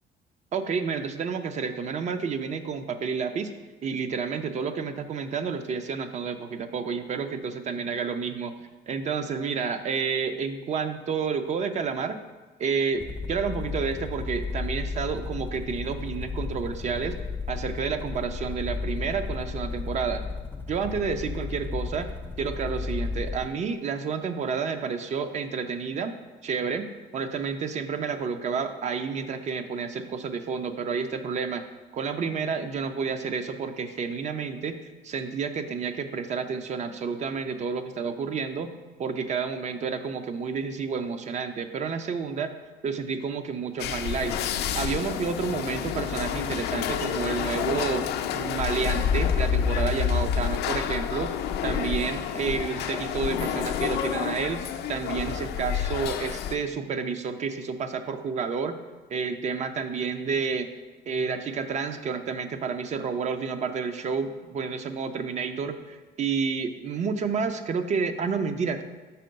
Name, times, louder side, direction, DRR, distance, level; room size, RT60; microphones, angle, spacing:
voice 1, 0.5-3.5 3.8-8.5 8.9-12.2 12.6-17.2 17.5-20.2 20.7-22.1 22.4-26.1 26.4-31.6 31.9-38.7 39.0-42.5 42.8-44.4 44.6-48.0 48.3-51.3 51.6-54.6 54.9-58.8 59.1-60.7 61.1-68.8, right 5 dB, 45° right, 9 dB, 0.5 m, -30 dB
sound 1, 12.9-23.5, left 4 dB, 10° left, 0.5 m, -34 dB
sound 2, 43.8-56.6, left 8 dB, 75° left, 0.5 m, -28 dB
5.6 x 3.7 x 5.2 m, 1.2 s
cardioid pair, 110°, 17 cm